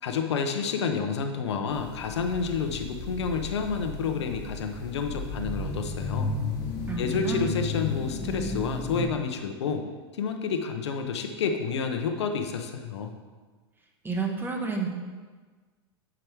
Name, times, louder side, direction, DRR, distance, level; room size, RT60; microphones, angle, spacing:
voice 1, 0.0-6.3 7.0-9.9 10.1-13.1, left 5 dB, 80° left, 5 dB, 0.8 m, -29 dB
sound 1, 1.7-9.0, left 3 dB, 30° left, 2.4 m, -34 dB
voice 2, 6.9-7.5 14.0-14.9, right 4 dB, 15° right, 2 dB, 1.2 m, -30 dB
7.7 x 5.0 x 4.6 m, 1.4 s
hypercardioid pair, 105°, 14 cm